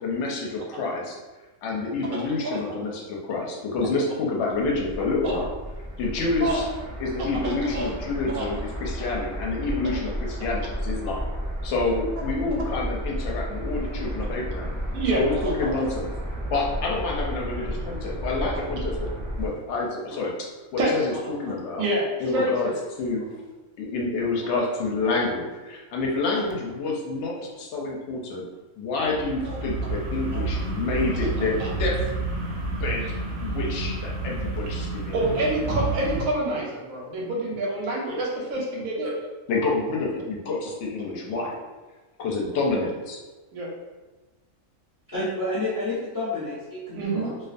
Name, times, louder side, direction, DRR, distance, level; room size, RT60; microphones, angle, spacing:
voice 1, 0.0-1.2 1.6-5.5 6.0-6.6 7.0-11.2 11.6-14.7 15.1-16.1 16.5-19.1 19.4-21.8 22.2-22.7 23.0-23.2 23.8-28.4 28.8-32.0 32.8-33.1 33.4-35.3 39.5-41.6 42.2-43.2, left 3 dB, 65° left, -1 dB, 0.8 m, -28 dB
sound 1, 4.5-19.5, equal, 30° right, 0.4 m, -32 dB
voice 2, 7.2-7.9 8.3-8.5 14.9-15.9 20.8-21.2 21.8-22.7 25.1-25.2 29.4-29.6 30.3-30.4 31.2-31.3 31.6-31.7 35.1-39.1 43.5-43.7 46.9-47.3, right 1 dB, 90° right, -2 dB, 1.0 m, -27 dB
sound 2, 29.0-36.2, right 2 dB, 65° right, 0.7 m, -29 dB
voice 3, 45.1-47.4, left 2 dB, 15° left, -11 dB, 0.7 m, -30 dB
2.3 x 2.3 x 2.5 m, 1.2 s
omnidirectional pair, 1.4 m